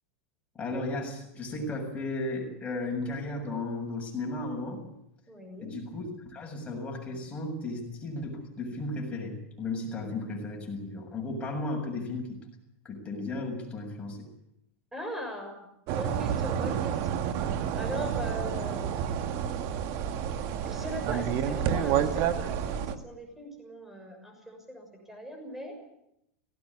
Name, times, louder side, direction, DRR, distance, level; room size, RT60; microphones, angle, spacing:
voice 1, 0.6-4.8 5.6-12.4 12.8-14.2, left 2 dB, 15° left, 1 dB, 7.3 m, -35 dB
voice 2, 5.3-5.7 14.9-17.5 17.8-19.3 20.6-25.7, equal, 5° right, 3 dB, 6.6 m, -40 dB
sound 1, 15.9-22.9, right 9 dB, 50° right, 1.8 m, -29 dB
18.0 x 18.0 x 9.8 m, 0.80 s
supercardioid pair, 140°, 7 cm